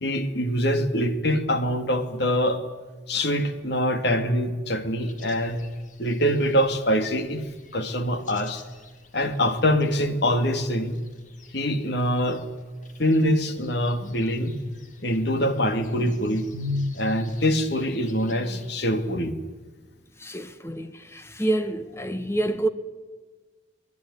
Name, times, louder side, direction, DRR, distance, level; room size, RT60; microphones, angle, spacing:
voice 1, 0.0-2.6 3.1-5.6 6.0-7.4 7.7-8.6 9.1-11.0 11.5-12.4 13.0-14.6 15.0-16.5 16.9-19.4, equal, 55° left, 2.5 m, -24 dB
sound 1, 5.0-18.7, left 2 dB, 40° left, 3.0 m, -41 dB
voice 2, 20.2-22.7, right 1 dB, 15° left, 1.3 m, -27 dB
24.0 x 19.5 x 9.8 m
head